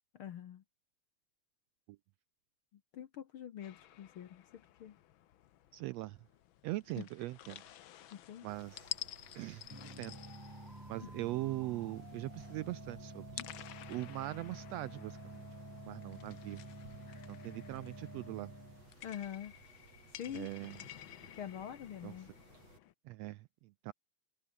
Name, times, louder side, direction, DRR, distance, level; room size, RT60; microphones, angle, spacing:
voice 1, 0.1-0.6 2.9-4.9 7.0-7.1 8.1-8.5 11.0-11.1 17.1-17.3 19.0-19.5 20.1-20.5 21.3-22.3, left 10 dB, 60° left, 1.5 m, -45 dB
sound 1, 3.6-22.9, left 12 dB, 85° left, 1.1 m, -52 dB
voice 2, 5.7-6.2 6.6-7.6 8.4-8.9 9.3-10.2 10.9-13.4 13.9-15.4 15.9-16.6 17.3-18.5 20.3-20.8 22.0-22.1 23.0-23.9, right 18 dB, 80° right, 1.5 m, -41 dB
Mechanisms, 8.5-22.8, right 3 dB, 55° right, 7.4 m, -61 dB
sound 2, 9.7-18.9, right 1 dB, 5° right, 2.9 m, -50 dB
omnidirectional pair, 3.4 m